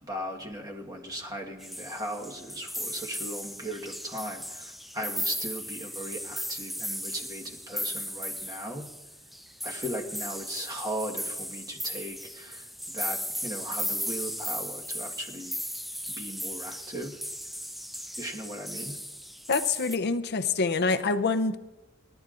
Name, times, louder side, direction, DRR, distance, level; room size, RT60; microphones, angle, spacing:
voice 1, 0.0-9.0 9.6-15.6 16.1-17.2 18.2-19.0, right 1 dB, 20° right, 0 dB, 1.4 m, -38 dB
sound 1, 1.6-20.0, equal, ahead, 0.4 m, -36 dB
voice 2, 19.5-21.6, left 4 dB, 50° left, 10 dB, 0.7 m, -26 dB
27.5 x 12.0 x 2.5 m, 1.1 s
head